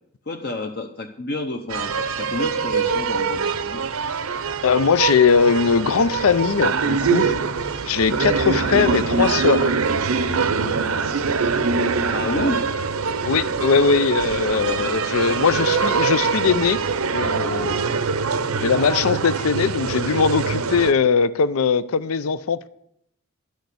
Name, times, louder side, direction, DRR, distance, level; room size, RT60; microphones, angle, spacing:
voice 1, 0.3-3.8 12.1-12.6 15.3-15.4, left 2 dB, 45° left, 0.8 m, -29 dB
sound 1, 1.7-20.9, right 5 dB, 85° right, 0.7 m, -23 dB
voice 2, 4.6-7.3 7.8-9.7 13.2-16.8 17.1-17.7 18.6-22.7, left 5 dB, 80° left, 0.5 m, -20 dB
11.5 x 6.4 x 8.3 m
head